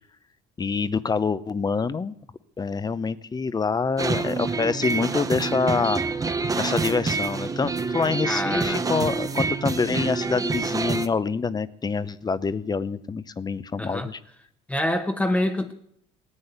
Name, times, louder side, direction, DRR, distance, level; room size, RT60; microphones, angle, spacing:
voice 1, 0.6-2.1 2.6-14.2, left 5 dB, 25° left, 0.7 m, -26 dB
sound 1, 4.0-11.1, right 4 dB, 20° right, 0.8 m, -27 dB
voice 2, 8.2-8.8 13.8-14.1 14.7-15.7, left 1 dB, 10° left, 1.1 m, -26 dB
18.0 x 9.8 x 8.1 m
cardioid pair, 110°, 17 cm